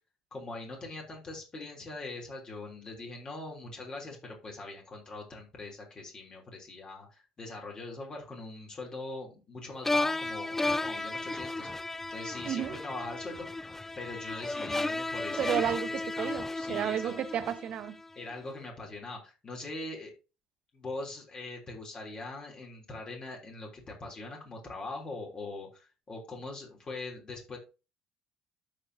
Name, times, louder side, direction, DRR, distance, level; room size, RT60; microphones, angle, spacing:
voice 1, 0.3-13.7 13.9-15.7 16.1-17.1 18.1-20.1 20.7-27.6, left 2 dB, 35° left, 3.2 m, -42 dB
sound 1, 9.8-18.0, left 2 dB, 15° left, 0.3 m, -34 dB
voice 2, 12.4-12.8 15.4-16.4 16.7-18.0, right 10 dB, 50° right, 0.8 m, -32 dB
13.0 x 4.6 x 2.7 m
hypercardioid pair, 60°, 2 cm